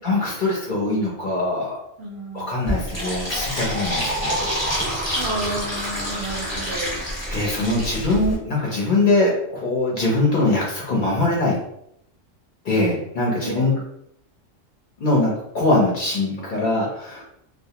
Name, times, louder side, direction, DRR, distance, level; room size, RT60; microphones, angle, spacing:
voice 1, 0.0-1.7 2.3-4.5 6.0-6.3 7.3-11.6 12.6-13.7 15.0-17.2, left 2 dB, 50° left, -4 dB, 0.6 m, -22 dB
voice 2, 2.0-2.7 5.2-7.0 13.4-13.7, right 2 dB, 65° right, -2 dB, 0.7 m, -31 dB
Fill (with liquid), 2.7-8.4, equal, 15° left, 0.8 m, -27 dB
2.2 x 2.0 x 2.8 m, 0.75 s
omnidirectional pair, 1.3 m